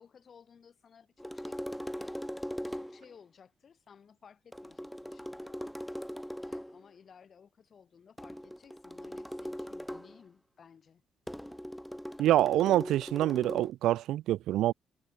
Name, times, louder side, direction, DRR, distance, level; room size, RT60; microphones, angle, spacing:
voice 1, 0.0-2.2 2.6-5.6 6.4-11.0, left 7 dB, 50° left, 5.6 m, -57 dB
sound 1, 1.2-3.1 4.5-6.8 8.2-10.2 11.3-13.7, equal, ahead, 2.4 m, -40 dB
voice 2, 12.2-14.7, right 13 dB, 85° right, 0.3 m, -26 dB
cardioid pair, 90°, 0 cm